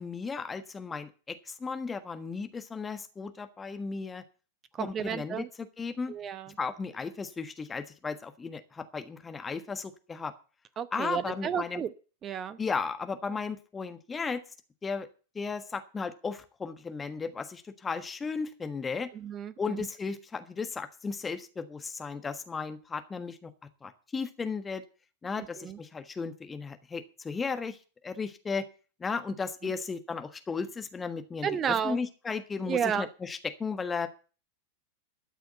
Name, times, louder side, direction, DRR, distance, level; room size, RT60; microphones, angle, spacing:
voice 1, 0.0-4.2 4.8-6.2 6.6-10.3 10.9-11.8 12.6-14.4 14.8-15.1 15.3-19.1 19.6-23.5 23.8-24.8 25.2-27.8 28.0-28.6 29.0-34.1, left 5 dB, 15° left, 9 dB, 1.5 m, -35 dB
voice 2, 4.7-5.5 6.1-6.5 10.8-11.9 12.2-12.6 19.1-19.8 25.6-25.8 29.6-29.7 31.4-32.0 32.7-33.1, right 8 dB, 25° right, 15 dB, 0.8 m, -32 dB
13.0 x 6.8 x 7.9 m, 0.36 s
figure-of-eight pair, 90°, 0 cm